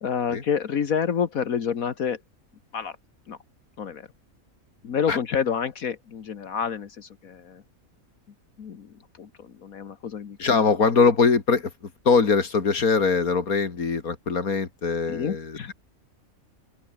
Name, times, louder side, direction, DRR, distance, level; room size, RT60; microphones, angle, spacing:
voice 1, 0.0-2.2 2.7-3.0 3.3-3.4 3.8-4.1 4.8-7.6 8.6-10.7 15.1-15.7, left 7 dB, 75° left, 1.8 m, -29 dB
voice 2, 10.4-11.7 12.0-15.7, left 5 dB, 90° left, 2.8 m, -22 dB
open air
omnidirectional pair, 1.5 m